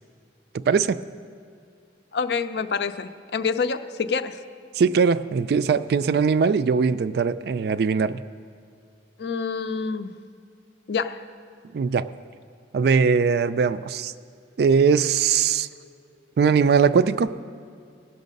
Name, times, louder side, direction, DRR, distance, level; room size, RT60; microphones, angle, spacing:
voice 1, 0.5-1.0 4.7-8.2 11.7-12.1 12.7-14.1 14.6-15.7 16.4-17.3, right 5 dB, 60° right, 14 dB, 0.3 m, -20 dB
voice 2, 2.1-4.4 9.2-10.1 10.9-11.2, left 5 dB, 65° left, 11 dB, 0.4 m, -27 dB
18.5 x 6.4 x 5.3 m, 2.3 s
head